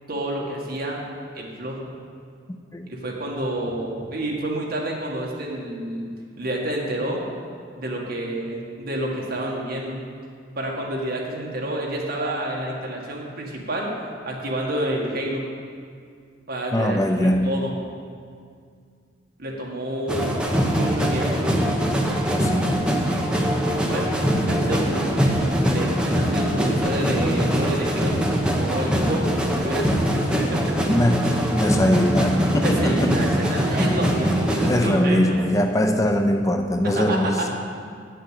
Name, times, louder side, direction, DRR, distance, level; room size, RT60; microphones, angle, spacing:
voice 1, 0.1-1.0 1.3-1.9 2.9-6.0 6.4-7.2 7.8-10.0 10.6-13.9 14.3-15.4 16.5-17.7 19.4-21.4 23.9-24.2 24.5-25.3 25.6-28.2 28.6-30.1 30.4-30.8 32.6-35.4 36.8-37.5, right 1 dB, 55° right, -2 dB, 1.8 m, -29 dB
voice 2, 16.7-17.6 22.3-22.8 30.9-33.3 33.6-33.8 34.6-37.5, left 1 dB, 15° left, 5 dB, 0.4 m, -22 dB
sound 1, 20.1-34.9, equal, 5° right, 0.9 m, -22 dB
8.8 x 6.7 x 8.2 m, 2.2 s
head